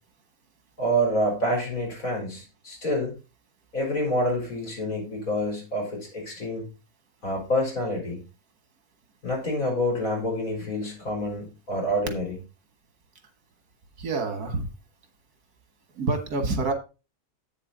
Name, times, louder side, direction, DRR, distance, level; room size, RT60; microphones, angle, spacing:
voice 1, 0.8-3.1 3.7-6.7 7.2-8.2 9.2-12.4, equal, 65° left, -1 dB, 4.3 m, -27 dB
voice 2, 14.0-14.7 16.0-16.7, right 3 dB, 85° right, 6 dB, 2.0 m, -27 dB
8.6 x 6.7 x 3.9 m, 0.31 s
omnidirectional pair, 1.6 m